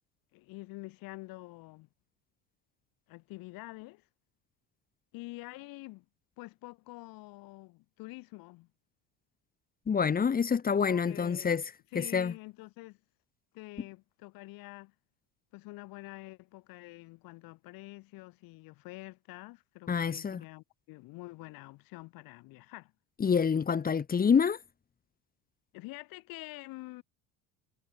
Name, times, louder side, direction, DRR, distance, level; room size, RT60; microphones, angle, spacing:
voice 1, 0.3-1.9 3.1-4.1 5.1-6.0 6.4-8.7 10.9-11.6 11.9-13.0 13.5-14.9 15.5-22.9 25.7-27.0, left 22 dB, 70° left, 6.1 m, -47 dB
voice 2, 9.9-11.6 12.0-12.3 19.9-20.4 23.2-24.6, left 6 dB, 25° left, 1.9 m, -27 dB
cardioid pair, 130°, 36 cm